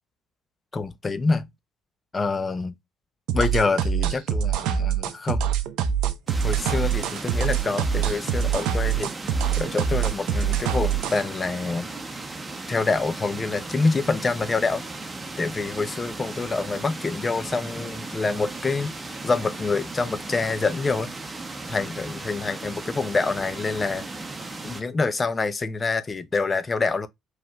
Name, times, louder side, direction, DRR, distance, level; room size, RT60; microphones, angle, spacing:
voice 1, 0.7-1.5 2.1-2.7 3.3-5.4 6.4-9.1 9.5-11.9 12.7-14.8 15.4-21.1 21.7-24.1 24.6-27.1, left 3 dB, 30° left, 0.6 m, -26 dB
sound 1, 3.3-11.2, right 8 dB, 65° right, 0.5 m, -24 dB
sound 2, 6.3-24.8, right 2 dB, 20° right, 0.9 m, -36 dB
4.8 x 3.2 x 2.3 m
hypercardioid pair, 50°, 0 cm